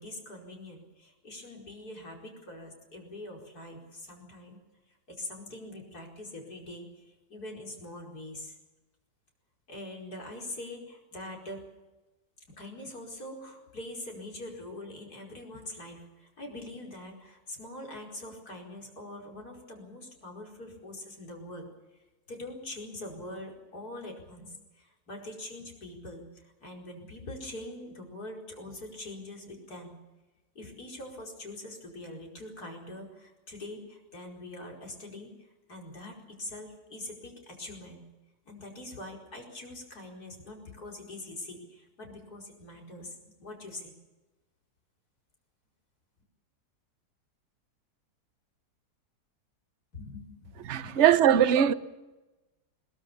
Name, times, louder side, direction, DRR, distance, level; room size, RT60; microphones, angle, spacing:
voice 1, 0.0-4.6 4.9-8.6 9.7-11.7 12.6-21.7 22.3-30.0 30.6-38.0 38.5-43.9 49.9-51.0, left 1 dB, 65° left, 5.4 m, -43 dB
voice 2, 50.6-51.7, right 9 dB, 50° right, 1.1 m, -21 dB
22.0 x 20.5 x 7.0 m
omnidirectional pair, 1.8 m